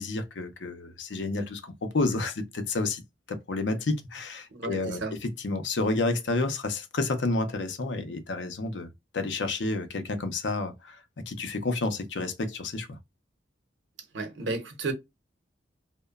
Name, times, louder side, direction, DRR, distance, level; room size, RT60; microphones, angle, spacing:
voice 1, 0.0-3.0 3.3-13.0, left 3 dB, 75° left, 0.6 m, -30 dB
voice 2, 4.5-5.2 14.1-14.9, right 3 dB, 85° right, 0.7 m, -33 dB
2.8 x 2.1 x 2.2 m
head